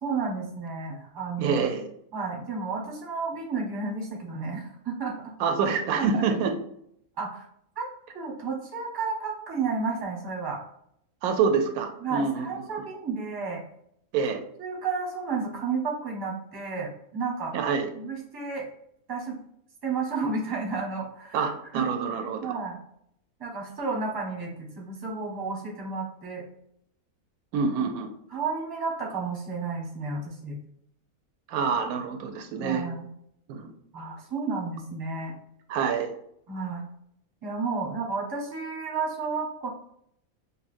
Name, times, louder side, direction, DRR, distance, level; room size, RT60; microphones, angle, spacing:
voice 1, 0.0-1.6 2.1-5.3 5.9-6.4 7.2-7.5 7.8-7.9 8.1-10.6 12.0-13.6 14.6-18.7 19.1-19.4 19.8-21.8 22.4-22.8 23.4-26.4 28.3-30.6 32.5-33.1 33.9-35.4 36.5-36.8 37.4-39.7, right 4 dB, 20° right, -1 dB, 0.8 m, -32 dB
voice 2, 1.4-1.8 5.4-6.5 11.2-12.5 14.1-14.4 17.5-17.9 21.3-22.6 27.5-28.1 31.5-32.8 33.5-33.7 35.7-36.1, right 5 dB, 80° right, 6 dB, 1.0 m, -26 dB
5.5 x 2.2 x 2.5 m, 0.72 s
omnidirectional pair, 1.6 m